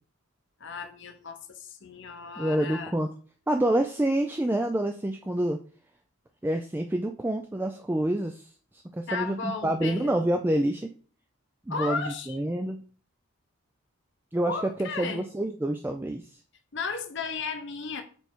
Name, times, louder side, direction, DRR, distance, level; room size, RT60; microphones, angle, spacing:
voice 1, 0.6-2.9 9.1-10.1 11.7-12.5 14.5-15.3 16.7-18.0, left 4 dB, 55° left, 0.8 m, -35 dB
voice 2, 2.4-3.1 3.5-5.6 6.4-8.5 8.9-10.9 11.7-12.8 14.3-16.4, right 1 dB, 10° right, 0.3 m, -27 dB
7.0 x 3.3 x 4.5 m
head